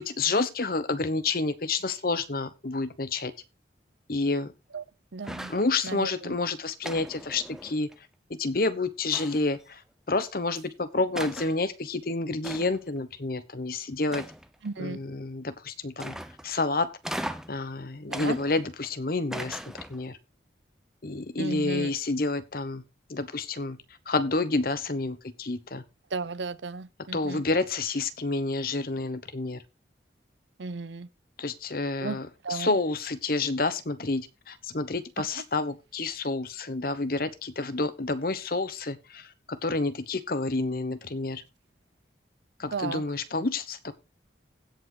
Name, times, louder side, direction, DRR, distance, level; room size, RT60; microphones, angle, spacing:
voice 1, 0.0-3.3 4.1-4.5 5.5-7.9 8.3-9.8 10.1-14.3 14.8-16.1 16.4-16.9 17.5-20.2 21.0-22.8 23.1-23.8 24.1-25.8 27.1-29.6 31.4-41.4 42.6-43.9, left 3 dB, 50° left, 0.9 m, -29 dB
voice 2, 5.1-5.5 5.8-6.3 14.6-15.0 18.1-18.4 21.4-21.9 26.1-27.4 30.6-31.1 32.0-32.2 32.4-32.8 35.2-35.4 42.7-43.0, right 4 dB, 75° right, 0.7 m, -34 dB
sound 1, 5.2-5.7 6.8-7.9 9.1-9.6 10.6-10.7 11.1-11.6 12.4-12.9 14.1-14.7 16.0-16.5 17.0-17.6 18.1-18.9 19.3-20.1, right 1 dB, 5° right, 0.6 m, -38 dB
16.5 x 5.6 x 3.8 m
head